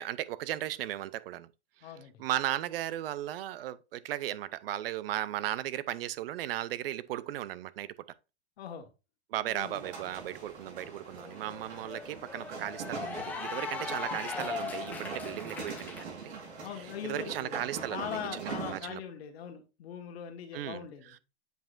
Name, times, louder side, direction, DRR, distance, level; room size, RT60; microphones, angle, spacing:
voice 1, 0.0-1.5 2.2-7.9 9.3-16.4 17.0-19.0 20.5-21.2, right 13 dB, 60° right, 0.5 m, -36 dB
voice 2, 1.8-2.1 8.6-8.9 9.5-9.8 16.6-17.6 17.9-21.2, left 9 dB, 65° left, 1.5 m, -41 dB
sound 1, 9.6-18.8, right 4 dB, 75° right, 3.7 m, -42 dB
Cheering / Applause, 10.6-16.0, left 5 dB, 5° left, 0.5 m, -40 dB
7.8 x 4.9 x 2.4 m
supercardioid pair, 160°, 33 cm